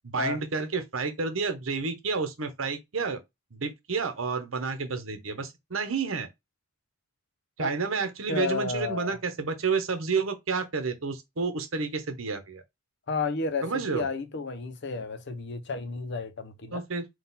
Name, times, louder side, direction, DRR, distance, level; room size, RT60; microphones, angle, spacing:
voice 1, 0.0-3.2 3.5-6.3 7.6-12.6 13.6-14.1 16.7-17.1, right 4 dB, 80° right, 0.9 m, -30 dB
voice 2, 8.3-9.2 13.1-16.8, left 4 dB, 60° left, 0.7 m, -32 dB
3.9 x 2.4 x 4.0 m
head